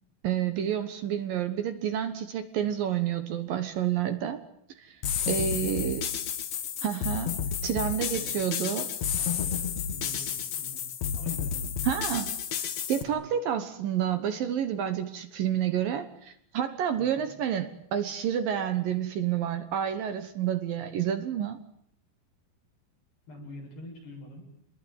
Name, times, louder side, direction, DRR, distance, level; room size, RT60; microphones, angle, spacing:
voice 1, 0.2-4.4 4.8-5.0 5.3-6.1 6.8-7.3 7.6-8.9 11.8-12.3 12.6-21.6, right 9 dB, 65° right, 9 dB, 2.6 m, -29 dB
sound 1, 5.0-13.0, left 7 dB, 55° left, 2.1 m, -31 dB
voice 2, 5.3-5.9 8.1-8.4 9.1-10.8 11.1-11.7 13.0-13.2 17.0-17.3 23.3-24.5, left 1 dB, 70° left, 0 dB, 9.9 m, -46 dB
27.5 x 20.5 x 9.3 m, 0.70 s
omnidirectional pair, 4.9 m